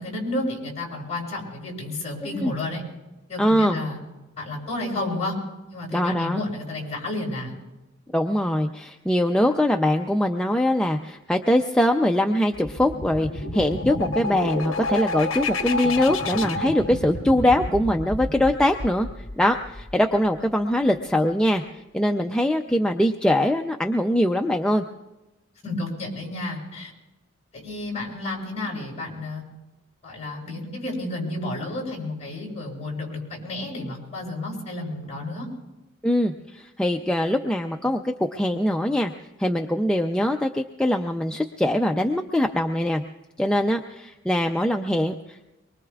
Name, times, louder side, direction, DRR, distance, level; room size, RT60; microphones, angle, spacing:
voice 1, 0.0-2.8 3.3-4.0 4.4-5.3 5.7-7.5 25.6-26.9 27.5-29.4 30.0-35.5, left 2 dB, 35° left, -2 dB, 7.1 m, -31 dB
voice 2, 3.4-3.8 5.9-6.4 8.1-21.6 21.9-24.8 36.0-39.1 39.4-43.0 43.4-45.5, left 1 dB, 5° left, 3 dB, 0.5 m, -22 dB
sound 1, 12.5-20.2, left 2 dB, 70° left, 1.1 m, -30 dB
24.5 x 23.0 x 2.4 m, 1.0 s
head